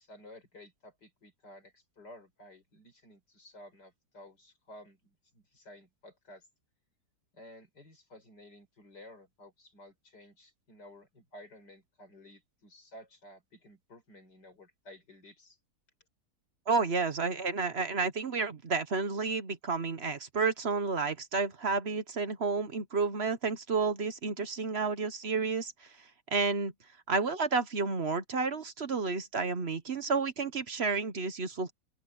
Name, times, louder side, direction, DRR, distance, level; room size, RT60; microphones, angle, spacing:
voice 1, 0.0-6.5 7.3-15.6, left 1 dB, 70° left, 6.1 m, -54 dB
voice 2, 16.7-25.7 26.3-26.7 27.1-31.7, right 4 dB, 40° right, 1.1 m, -31 dB
open air
omnidirectional pair, 1.9 m